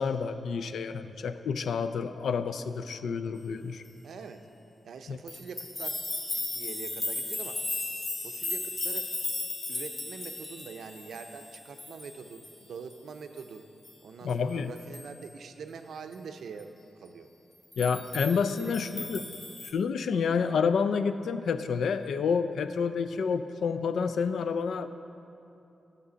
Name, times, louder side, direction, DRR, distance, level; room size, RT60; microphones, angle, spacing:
voice 1, 0.0-3.8 5.1-5.2 14.2-14.7 17.8-19.2 19.7-24.9, left 5 dB, 90° left, 11 dB, 0.3 m, -29 dB
voice 2, 4.0-4.4 4.8-6.0 6.3-7.6 8.2-9.1 9.7-13.7 14.0-16.7 17.0-17.3 18.6-19.3, right 5 dB, 85° right, 7 dB, 0.5 m, -44 dB
sound 1, 5.3-12.6 12.9-13.0 13.4-13.5 13.8-13.9 14.3-14.4 14.8-15.3 17.7-19.7, left 2 dB, 40° left, 0.7 m, -36 dB
9.8 x 6.6 x 5.1 m, 2.9 s
wide cardioid pair, 145°, 0 cm